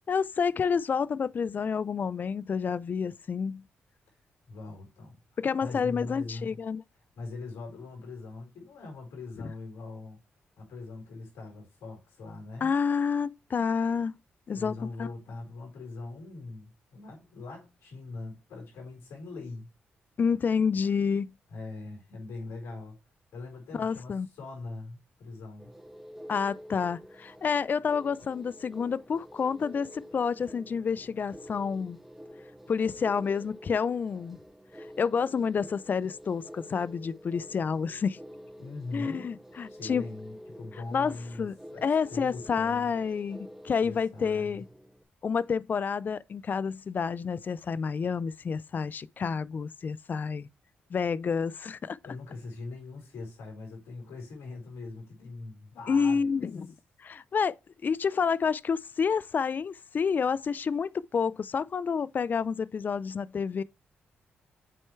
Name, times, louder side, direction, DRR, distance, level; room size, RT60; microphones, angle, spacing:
voice 1, 0.1-3.6 5.4-6.8 12.6-14.1 14.5-15.1 20.2-21.3 23.7-24.3 26.3-32.0 32.7-34.4 34.8-38.2 38.9-40.1 40.9-41.5 41.8-44.7 45.2-50.5 50.9-52.0 55.9-57.6 57.8-63.6, left 6 dB, 45° left, 0.4 m, -29 dB
voice 2, 4.5-5.2 5.6-6.5 7.2-10.2 10.6-12.7 14.5-19.7 21.5-23.0 23.3-25.7 38.6-39.4 39.7-42.9 43.8-44.6 52.0-56.3, left 3 dB, 75° left, 4.2 m, -41 dB
sound 1, 25.6-45.0, equal, 5° right, 1.3 m, -48 dB
7.6 x 4.5 x 3.1 m
cardioid pair, 65°, 4 cm